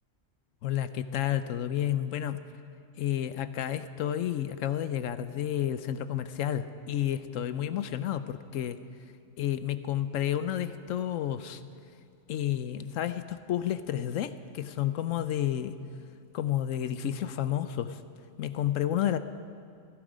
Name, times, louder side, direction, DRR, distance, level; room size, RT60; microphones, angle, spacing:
voice 1, 0.6-2.5 3.0-8.8 9.4-11.6 12.3-15.8 16.3-18.0 18.4-19.2, left 11 dB, 75° left, 12 dB, 1.0 m, -31 dB
18.0 x 15.5 x 5.0 m, 2.3 s
omnidirectional pair, 1.4 m